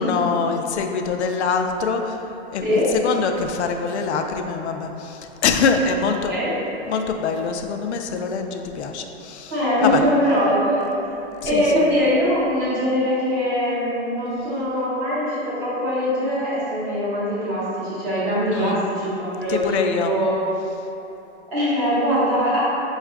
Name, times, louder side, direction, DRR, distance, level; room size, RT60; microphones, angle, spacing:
voice 1, 0.0-2.2 2.5-6.3 6.9-9.5 9.8-10.0 11.4-11.9 18.5-18.8 19.5-20.1, left 5 dB, 70° left, 5 dB, 0.5 m, -24 dB
voice 2, 2.6-2.9 6.3-6.5 9.5-10.9 11.4-20.3 21.5-22.6, equal, 15° right, -10 dB, 0.8 m, -22 dB
5.3 x 2.4 x 3.5 m, 3.0 s
hypercardioid pair, 170°, 35 cm